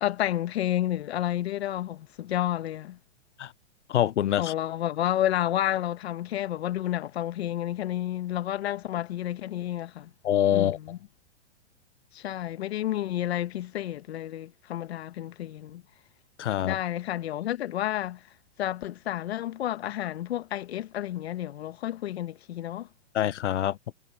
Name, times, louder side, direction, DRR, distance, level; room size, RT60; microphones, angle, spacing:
voice 1, 0.0-3.0 4.4-10.1 10.5-11.0 12.1-15.8 16.6-18.2 18.6-22.9, left 12 dB, 65° left, 1.4 m, -30 dB
voice 2, 3.9-4.5 10.2-10.8 16.4-16.8 23.1-23.8, left 11 dB, 80° left, 1.0 m, -25 dB
hypercardioid pair, 160°, 35 cm